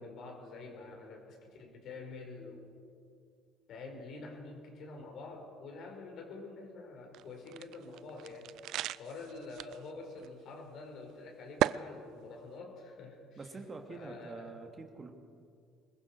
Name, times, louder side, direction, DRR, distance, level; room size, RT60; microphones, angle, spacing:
voice 1, 0.0-2.7 3.7-8.5 9.0-13.5 13.9-14.6, left 3 dB, 55° left, 1 dB, 5.2 m, -47 dB
sound 1, 7.1-9.9 10.2-10.3 11.6-11.8, right 13 dB, 60° right, 0.4 m, -35 dB
voice 2, 13.4-15.1, right 3 dB, 30° right, 4 dB, 2.6 m, -45 dB
25.0 x 22.0 x 4.8 m, 2.3 s
hypercardioid pair, 60°, 0 cm